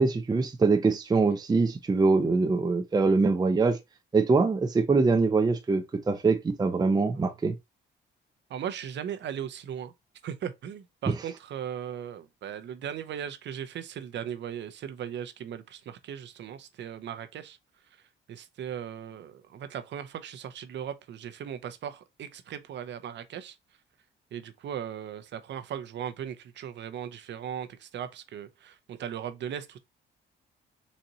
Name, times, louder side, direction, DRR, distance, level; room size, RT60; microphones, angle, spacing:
voice 1, 0.0-3.8 4.1-7.5 11.1-11.2, right 4 dB, 20° right, 0.5 m, -23 dB
voice 2, 8.5-9.9 10.2-17.6 18.3-23.6 24.3-29.8, right 9 dB, 65° right, 0.6 m, -38 dB
4.1 x 2.5 x 2.7 m
cardioid pair, 90°, 20 cm